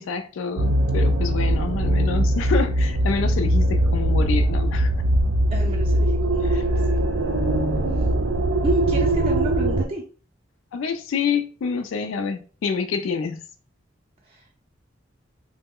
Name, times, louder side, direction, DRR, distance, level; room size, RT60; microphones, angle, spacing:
voice 1, 0.0-4.9 6.4-6.6 10.7-13.4, left 5 dB, 80° left, 0.3 m, -27 dB
sound 1, 0.6-9.8, right 1 dB, 80° right, 0.5 m, -21 dB
voice 2, 5.5-7.1 8.6-10.0 14.3-14.5, right 1 dB, 30° right, 0.5 m, -32 dB
3.0 x 2.1 x 3.5 m
head